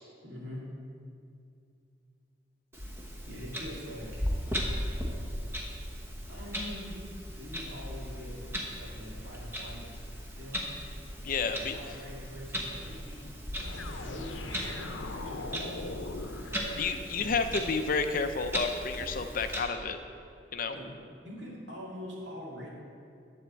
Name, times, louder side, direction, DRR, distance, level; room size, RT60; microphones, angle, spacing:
voice 1, 0.2-0.7 3.3-4.3 6.3-7.0 7.4-9.9 10.4-10.7 11.4-13.3 14.0-15.9 16.5-16.7 17.2-17.5 20.7-20.9 21.2-22.7, left 1 dB, 70° right, -4 dB, 2.4 m, -44 dB
Clock, 2.7-19.6, equal, 15° right, 1.0 m, -38 dB
voice 2, 11.2-11.8 16.8-20.0 20.5-20.8, left 4 dB, 45° left, 8 dB, 0.5 m, -30 dB
sound 1, 13.6-17.5, left 2 dB, 85° left, 0.7 m, -41 dB
10.5 x 4.3 x 7.4 m, 2.5 s
head